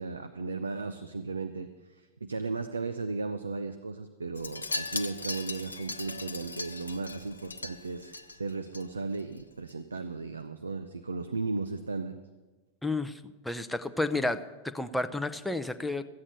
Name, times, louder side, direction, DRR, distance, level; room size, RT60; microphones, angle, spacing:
voice 1, 0.0-12.2, right 3 dB, 75° right, 11 dB, 0.6 m, -35 dB
Wind chime, 4.4-8.8 9.1-9.4 9.7-9.8, left 3 dB, 80° left, 0.7 m, -38 dB
voice 2, 12.8-14.4 14.7-16.0, left 2 dB, 5° left, 10 dB, 0.6 m, -31 dB
14.5 x 8.5 x 6.7 m, 1.2 s
figure-of-eight pair, 90°, 0 cm